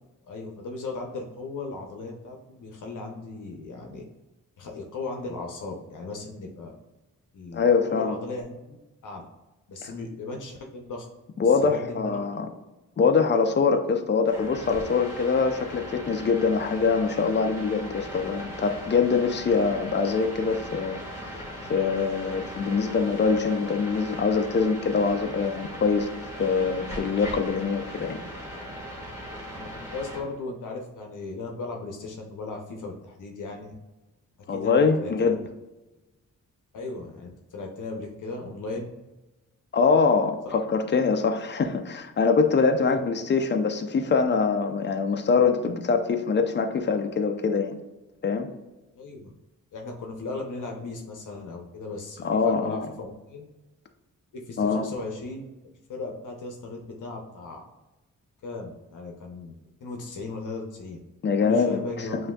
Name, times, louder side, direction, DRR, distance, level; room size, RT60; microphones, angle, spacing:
voice 1, 0.3-4.0 4.6-6.7 7.3-8.8 9.0-9.2 9.7-11.1 11.4-12.2 29.5-33.7 34.5-35.4 36.7-38.9 40.5-40.6 42.8-43.0 48.9-49.3 49.7-53.5 54.3-57.6 58.4-59.6 59.8-61.0 61.4-62.2, left 3 dB, 65° left, 1 dB, 0.7 m, -37 dB
voice 2, 7.5-8.2 11.4-12.5 13.0-21.4 21.7-28.2 34.5-35.4 39.7-47.8 48.2-48.5 52.2-52.9 54.6-54.9 61.2-61.8, left 5 dB, 35° left, 6 dB, 0.4 m, -24 dB
sound 1, 14.2-30.2, equal, 10° right, 1.5 m, -39 dB
7.6 x 2.6 x 2.3 m, 1.1 s
wide cardioid pair, 155°, 33 cm